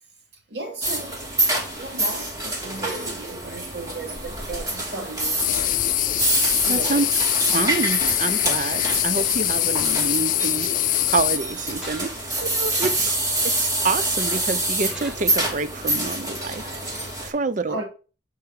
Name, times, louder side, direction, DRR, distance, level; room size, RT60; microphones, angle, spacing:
voice 1, 0.5-5.8 6.6-7.1 17.2-17.4 17.7-17.8, right 2 dB, 60° right, 2.6 m, -35 dB
sound 1, 0.8-17.3, right 1 dB, 20° right, 2.8 m, -26 dB
sound 2, 5.4-11.4, left 14 dB, 45° left, 0.4 m, -23 dB
voice 2, 6.7-7.1 7.5-12.1 12.4-13.2 13.4-17.8, right 4 dB, 40° right, 0.5 m, -27 dB
sound 3, 9.1-9.4 11.8-12.2 12.8-12.9 14.8-15.4, left 1 dB, ahead, 2.2 m, -40 dB
9.0 x 4.6 x 5.3 m
head